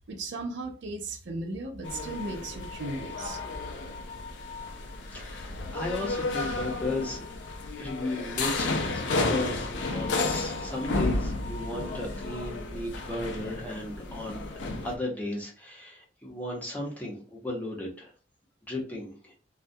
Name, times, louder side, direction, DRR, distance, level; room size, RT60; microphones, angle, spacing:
voice 1, 0.1-3.4, right 2 dB, 75° right, 0.5 m, -36 dB
People and machinery working - Rome, 1.8-15.0, left 2 dB, 85° left, 0.4 m, -32 dB
voice 2, 5.1-7.2 7.7-18.1 18.7-19.3, left 2 dB, 10° left, 0.7 m, -35 dB
2.3 x 2.1 x 2.6 m
head